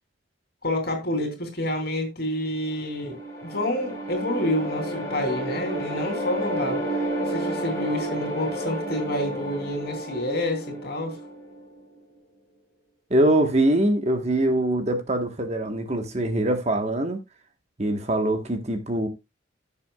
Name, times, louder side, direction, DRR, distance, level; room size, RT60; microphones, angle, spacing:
voice 1, 0.6-6.8 7.2-11.2, left 1 dB, 50° left, 3.1 m, -28 dB
sound 1, 2.7-11.8, right 1 dB, 15° left, 5.4 m, -31 dB
voice 2, 13.1-17.2 17.8-19.1, right 1 dB, 35° right, 1.3 m, -23 dB
15.5 x 7.0 x 2.3 m
head